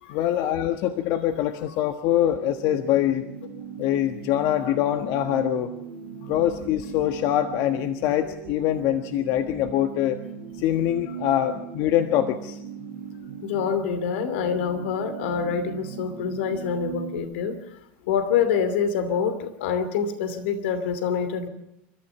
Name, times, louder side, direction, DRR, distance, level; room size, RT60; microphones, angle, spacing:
voice 1, 0.1-3.2 3.8-5.7 6.3-10.2 10.6-12.6, left 12 dB, 60° left, 8 dB, 1.4 m, -24 dB
sound 1, 2.3-17.2, right 7 dB, 85° right, 4.4 m, -39 dB
voice 2, 13.4-17.6 18.1-21.5, left 6 dB, 80° left, 11 dB, 2.7 m, -26 dB
29.0 x 13.5 x 7.0 m, 0.84 s
supercardioid pair, 115°, 6 cm